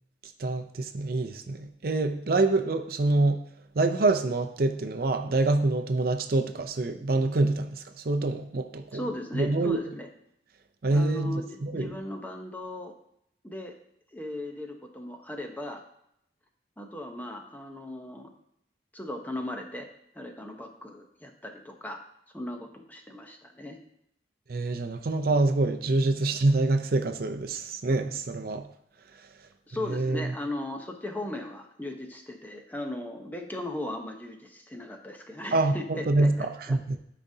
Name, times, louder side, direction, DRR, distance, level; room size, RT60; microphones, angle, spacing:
voice 1, 0.4-3.4 3.7-9.0 9.3-9.8 10.8-12.0 24.5-28.7 29.8-30.3 35.5-37.0, right 2 dB, 55° right, 7 dB, 0.5 m, -26 dB
voice 2, 8.9-10.1 10.9-12.9 13.4-13.7 14.1-15.8 16.8-18.3 18.9-19.9 20.1-22.0 22.3-23.8 29.7-36.8, left 1 dB, 10° left, 3 dB, 0.8 m, -37 dB
12.5 x 5.0 x 2.7 m, 0.74 s
head